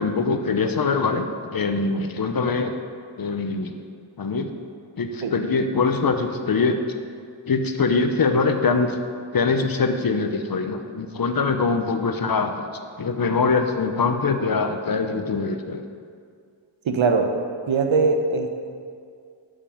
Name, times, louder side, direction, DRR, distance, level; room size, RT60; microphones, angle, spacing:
voice 1, 0.0-2.7 3.2-3.7 4.2-4.5 5.0-6.8 7.5-9.0 9.3-12.7 13.0-15.8, left 4 dB, 50° left, 7 dB, 0.9 m, -23 dB
voice 2, 16.8-17.3 17.7-18.7, right 4 dB, 80° right, 4 dB, 1.1 m, -21 dB
12.5 x 5.6 x 5.2 m, 2.2 s
cardioid pair, 55°, 47 cm